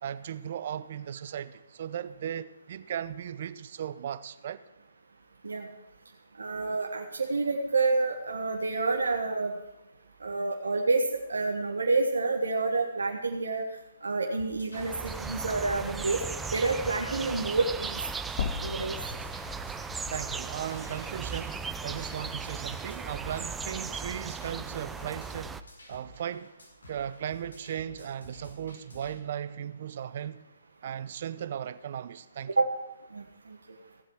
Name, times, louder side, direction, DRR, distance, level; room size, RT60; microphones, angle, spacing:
voice 1, 0.0-4.6 20.1-25.6 25.9-26.5 26.9-30.4 30.8-32.6, right 9 dB, 50° right, 0.7 m, -37 dB
voice 2, 6.4-9.5 10.2-11.0 11.3-13.6 14.0-16.2 16.5-18.0 18.6-18.9 32.6-32.7 33.1-33.2, right 3 dB, 80° right, 1.4 m, -28 dB
sound 1, 14.4-29.1, left 1 dB, 85° left, 5.3 m, -51 dB
sound 2, 14.7-25.6, right 5 dB, 10° right, 0.5 m, -37 dB
sound 3, 18.4-22.5 22.9-23.0 24.4-24.5, left 7 dB, 45° left, 1.2 m, -39 dB
15.5 x 7.6 x 6.4 m
hypercardioid pair, 140°, 0 cm